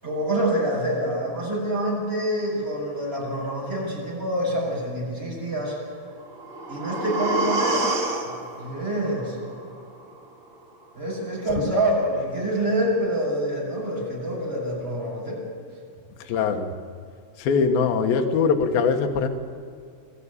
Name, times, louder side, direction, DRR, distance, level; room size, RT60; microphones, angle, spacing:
voice 1, 0.0-5.8 6.7-7.9 8.2-9.4 11.0-15.4, right 1 dB, 15° right, -4 dB, 7.2 m, -26 dB
sound 1, 6.2-10.2 10.5-10.6, right 2 dB, 40° right, 1.9 m, -29 dB
voice 2, 16.3-16.7 17.4-19.3, left 5 dB, 70° left, 4 dB, 3.0 m, -22 dB
21.0 x 14.0 x 9.8 m, 2.3 s
omnidirectional pair, 4.6 m